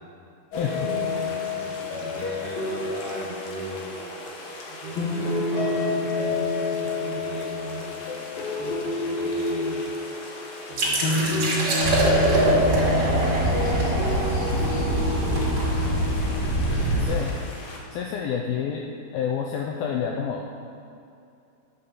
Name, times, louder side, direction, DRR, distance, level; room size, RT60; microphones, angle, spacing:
sound 1, 0.5-17.8, left 2 dB, 65° left, 2.8 m, -29 dB
voice 1, 0.5-8.3 8.6-9.8 10.7-12.5 12.9-16.0 16.5-17.3, right 2 dB, 75° right, -7 dB, 1.4 m, -38 dB
sound 2, 10.8-16.3, right 1 dB, 40° right, 2.8 m, -25 dB
sound 3, 11.8-17.0, right 1 dB, 45° left, 2.9 m, -25 dB
voice 2, 17.0-17.3 17.9-18.9 19.1-20.6, left 7 dB, 85° left, 0 dB, 2.1 m, -28 dB
11.0 x 5.6 x 6.9 m, 2.6 s
omnidirectional pair, 4.9 m